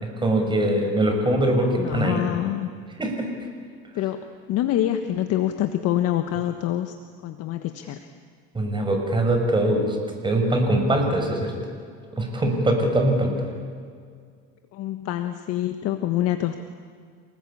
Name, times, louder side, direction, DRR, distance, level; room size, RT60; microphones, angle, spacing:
voice 1, 0.2-2.2 3.0-3.3 8.5-10.0 10.2-11.5 12.2-13.3, right 1 dB, 15° right, 3 dB, 6.2 m, -22 dB
voice 2, 1.7-2.7 3.9-6.9 7.2-8.1 14.7-16.7, left 12 dB, 55° left, 8 dB, 1.5 m, -26 dB
27.5 x 19.5 x 8.7 m, 2.1 s
supercardioid pair, 110°, 29 cm